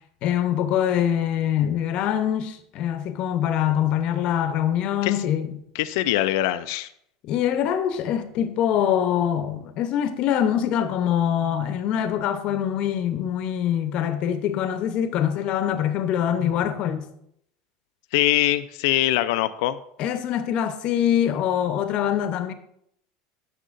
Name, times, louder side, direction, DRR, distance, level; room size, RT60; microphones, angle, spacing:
voice 1, 0.2-5.6 7.2-17.1 20.0-22.5, left 10 dB, 55° left, 0.8 m, -24 dB
voice 2, 5.7-6.9 18.1-19.8, left 15 dB, 75° left, 0.4 m, -22 dB
10.0 x 6.5 x 2.6 m
supercardioid pair, 110°, 2 cm